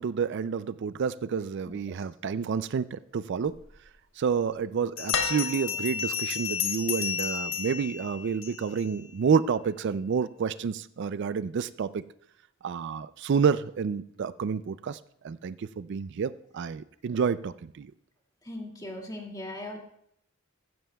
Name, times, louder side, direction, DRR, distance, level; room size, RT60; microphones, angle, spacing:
voice 1, 0.0-3.6 4.2-12.0 12.6-15.0 15.2-17.9, right 6 dB, 60° right, 15 dB, 0.4 m, -29 dB
voice 2, 1.7-2.0 18.4-19.8, left 1 dB, 20° left, 0 dB, 2.3 m, -39 dB
Bell, 3.8-3.9 5.0-8.9, left 7 dB, 70° left, 1.7 m, -32 dB
sound 1, 5.1-6.1 7.6-7.7, left 6 dB, 90° left, 1.3 m, -32 dB
15.5 x 14.5 x 2.3 m, 0.72 s
head